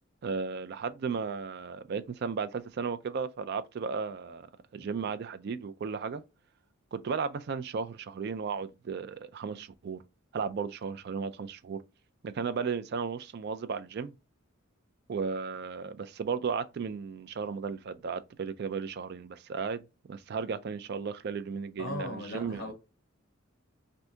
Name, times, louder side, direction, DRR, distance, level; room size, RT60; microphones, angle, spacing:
voice 1, 0.2-4.5 4.7-6.2 6.9-10.0 10.3-11.8 12.2-14.1 15.1-19.8 20.1-22.7, right 5 dB, 50° right, 0.4 m, -35 dB
voice 2, 21.8-22.7, left 2 dB, 45° left, 1.2 m, -37 dB
3.3 x 2.6 x 2.7 m
head